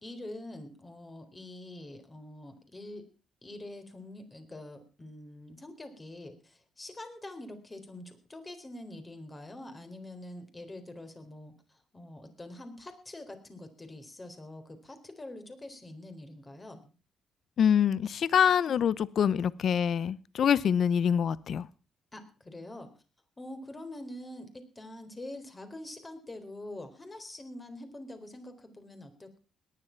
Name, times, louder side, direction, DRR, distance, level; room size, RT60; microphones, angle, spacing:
voice 1, 0.0-3.0 3.4-16.9 22.1-22.9 23.4-29.4, left 1 dB, 20° left, 4.0 m, -45 dB
voice 2, 17.6-21.7, left 8 dB, 60° left, 0.7 m, -25 dB
18.5 x 11.0 x 5.8 m
cardioid pair, 90°, 0 cm